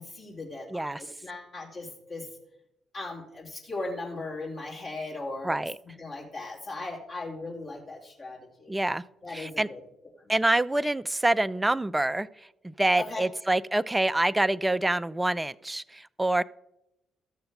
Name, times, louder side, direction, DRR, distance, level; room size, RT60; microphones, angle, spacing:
voice 1, 0.0-2.3 2.9-5.5 6.0-8.7 9.2-9.8 13.0-13.2, left 2 dB, 45° left, -3 dB, 2.7 m, -38 dB
voice 2, 0.7-1.0 5.4-5.8 8.7-9.0 9.3-9.7 10.3-16.4, right 1 dB, 15° right, 18 dB, 0.4 m, -26 dB
13.5 x 6.8 x 4.0 m, 0.86 s
figure-of-eight pair, 40°, 0 cm